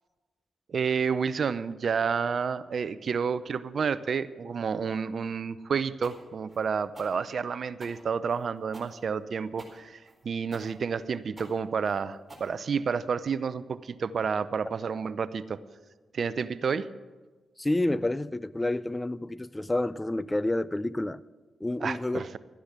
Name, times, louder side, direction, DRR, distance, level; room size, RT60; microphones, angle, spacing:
voice 1, 0.7-10.0 10.2-15.6 16.1-16.9 21.8-22.4, right 6 dB, 60° right, 0.6 m, -30 dB
sound 1, 6.0-13.1, right 2 dB, 15° right, 4.3 m, -50 dB
voice 2, 17.6-21.2 21.6-22.3, left 1 dB, 20° left, 0.5 m, -29 dB
13.0 x 10.0 x 7.3 m
supercardioid pair, 50°, 0 cm